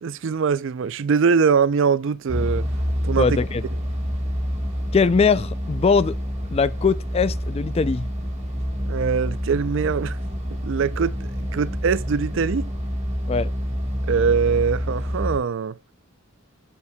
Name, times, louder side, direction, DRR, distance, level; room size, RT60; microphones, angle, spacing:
voice 1, 0.0-2.7 3.0-3.3 8.9-10.2 10.6-11.1 11.5-12.6 14.1-15.7, right 6 dB, 65° right, 0.4 m, -22 dB
sound 1, 2.3-15.4, equal, 35° right, 1.9 m, -27 dB
voice 2, 3.2-3.6 4.9-6.2 6.5-8.1 13.3-13.5, left 5 dB, 30° left, 0.3 m, -21 dB
7.0 x 6.5 x 2.2 m
head